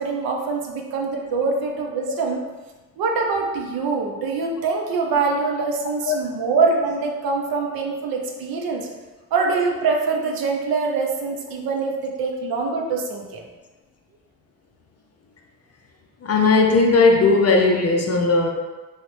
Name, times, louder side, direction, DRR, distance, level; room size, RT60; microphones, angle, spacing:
voice 1, 0.0-2.4 3.0-8.9 9.3-13.5, right 4 dB, 50° right, 1 dB, 0.7 m, -24 dB
voice 2, 16.2-18.5, left 3 dB, 35° left, 2 dB, 0.5 m, -17 dB
3.1 x 2.8 x 3.1 m, 1.2 s
hypercardioid pair, 40°, 45 cm